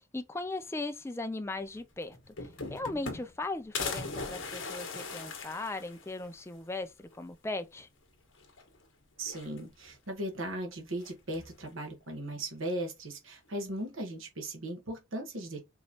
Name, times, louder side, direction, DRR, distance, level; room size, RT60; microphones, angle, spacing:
voice 1, 0.1-2.2 2.7-7.9, left 2 dB, 10° left, 0.4 m, -38 dB
sound 1, 1.8-1.9 2.1-3.4 3.7-6.3 6.8-6.9 7.1-7.2 8.4-8.8 9.2-9.9 11.0-11.6, left 4 dB, 65° left, 1.3 m, -39 dB
voice 2, 9.2-15.6, right 1 dB, 70° right, 1.2 m, -37 dB
4.7 x 3.0 x 2.8 m
head